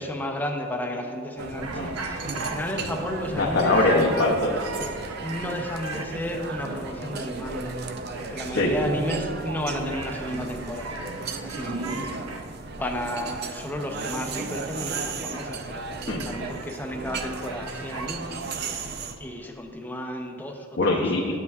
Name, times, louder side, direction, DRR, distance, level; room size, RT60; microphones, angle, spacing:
voice 1, 0.0-3.8 5.2-7.8 8.1-11.1 11.4-12.1 12.7-18.4 19.2-21.0, left 1 dB, 10° left, 2 dB, 0.6 m, -33 dB
sound 1, 1.4-19.2, right 3 dB, 50° right, 0.5 m, -34 dB
sound 2, 1.6-2.6 3.7-6.1 7.4-7.5 7.8-8.3 9.7-12.4 14.4-14.6 14.8-15.5 16.2-18.1, right 3 dB, 90° right, 0.7 m, -37 dB
voice 2, 3.4-4.6 8.5-8.7 16.1-16.2 20.8-21.4, left 2 dB, 65° left, -3 dB, 0.7 m, -22 dB
9.6 x 8.2 x 2.4 m, 2.5 s
head